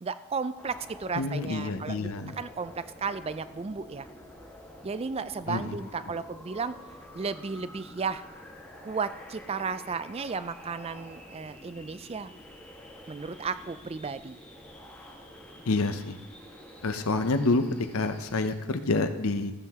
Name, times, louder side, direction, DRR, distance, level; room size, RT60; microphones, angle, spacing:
voice 1, 0.0-4.1 4.8-6.8 7.1-8.2 8.8-12.3 13.1-14.4, right 5 dB, 25° right, 13 dB, 0.3 m, -34 dB
sound 1, 0.5-18.5, equal, 5° left, 1.3 m, -48 dB
voice 2, 1.2-2.4 5.5-5.7 15.7-16.2 16.8-19.5, left 3 dB, 70° left, 8 dB, 0.7 m, -28 dB
15.0 x 7.5 x 3.6 m, 1.2 s
head